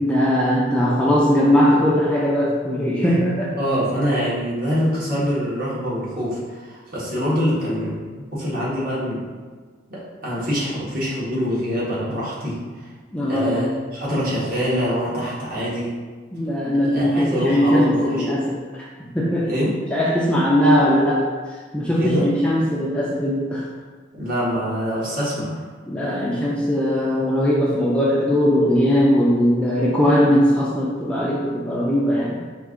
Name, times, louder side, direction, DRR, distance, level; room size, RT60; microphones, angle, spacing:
voice 1, 0.0-3.6 13.1-13.7 16.3-18.9 19.1-19.5 19.9-21.2 21.7-23.7 25.9-32.5, equal, 5° left, -6 dB, 0.4 m, -19 dB
voice 2, 3.6-8.0 8.3-9.2 9.9-12.6 13.3-15.9 16.9-18.3 19.4-19.7 21.9-22.3 24.1-25.6, equal, 50° right, -8 dB, 1.4 m, -24 dB
4.5 x 2.5 x 3.7 m, 1.5 s
head